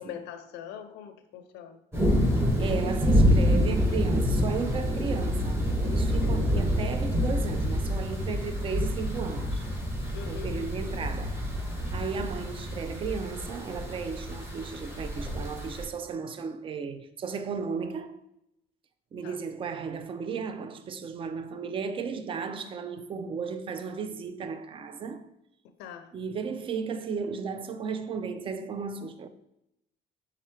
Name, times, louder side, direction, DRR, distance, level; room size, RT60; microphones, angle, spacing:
voice 1, 0.0-1.8 10.1-10.5 19.2-19.4 25.8-26.1, left 9 dB, 90° left, 0.5 m, -42 dB
sound 1, 1.9-15.8, equal, 15° right, 1.5 m, -27 dB
voice 2, 2.6-9.6 10.2-11.5 11.9-18.2 19.1-25.3 26.1-29.3, right 5 dB, 30° right, 0.4 m, -35 dB
4.3 x 3.8 x 3.1 m
cardioid pair, 110°, 17 cm